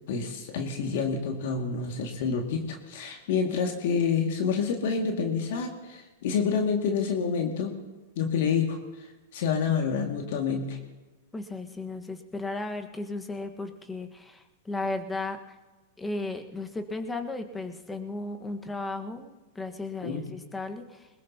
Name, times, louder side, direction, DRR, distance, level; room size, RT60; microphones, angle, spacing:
voice 1, 0.1-7.7 8.2-9.1 9.3-10.8 20.0-20.3, left 6 dB, 60° left, 2 dB, 2.1 m, -28 dB
voice 2, 11.3-15.6 16.0-21.1, left 2 dB, 10° left, 6 dB, 1.4 m, -35 dB
21.5 x 20.5 x 2.9 m, 1.2 s
hypercardioid pair, 110°, 0 cm